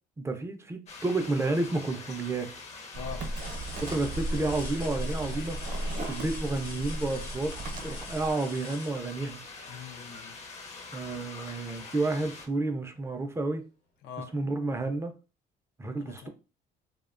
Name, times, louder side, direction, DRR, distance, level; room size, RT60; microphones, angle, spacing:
voice 1, 0.2-2.5 3.8-5.8 6.1-7.6 7.8-9.4 10.9-13.6 14.3-15.1 15.8-16.3, right 2 dB, 15° right, 0.4 m, -31 dB
sound 1, 0.9-12.5, left 4 dB, 40° left, 0.6 m, -44 dB
voice 2, 2.9-3.3 9.7-10.4 14.0-14.3 16.0-16.3, left 7 dB, 85° left, 0.4 m, -42 dB
sound 2, 2.9-8.3, right 1 dB, 50° right, 0.7 m, -36 dB
sound 3, 3.2-9.8 11.6-11.8 12.2-13.3 14.6-14.7, left 3 dB, 60° left, 0.9 m, -47 dB
2.7 x 2.1 x 2.4 m
cardioid pair, 110°, 17 cm